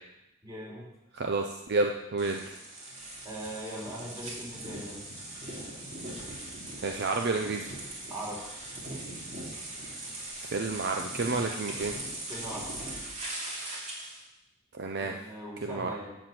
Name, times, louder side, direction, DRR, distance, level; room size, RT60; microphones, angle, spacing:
voice 1, 0.4-0.9 3.2-5.0 8.1-8.4 12.3-12.7 15.0-16.2, right 1 dB, 20° right, -5 dB, 3.8 m, -40 dB
voice 2, 1.1-2.5 6.8-7.7 9.9-10.0 10.4-11.9 14.7-15.1 15.6-15.9, right 3 dB, 55° right, 3 dB, 0.6 m, -30 dB
sound 1, 2.2-14.2, right 1 dB, 35° right, 2.8 m, -40 dB
11.5 x 4.6 x 7.7 m, 0.92 s
head